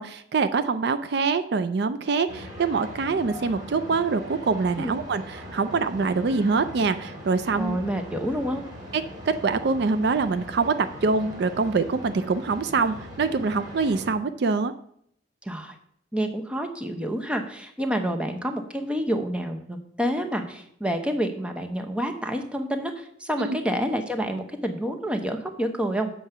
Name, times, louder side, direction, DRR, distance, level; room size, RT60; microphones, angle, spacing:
voice 1, 0.0-7.8 8.9-10.7 11.0-14.7 23.4-23.6, right 4 dB, 60° right, 11 dB, 0.4 m, -25 dB
sound 1, 2.3-14.1, equal, 20° right, 2.3 m, -40 dB
voice 2, 7.6-8.6 15.4-15.7 16.1-26.1, equal, 5° right, 4 dB, 0.8 m, -28 dB
7.3 x 4.6 x 6.7 m, 0.68 s
head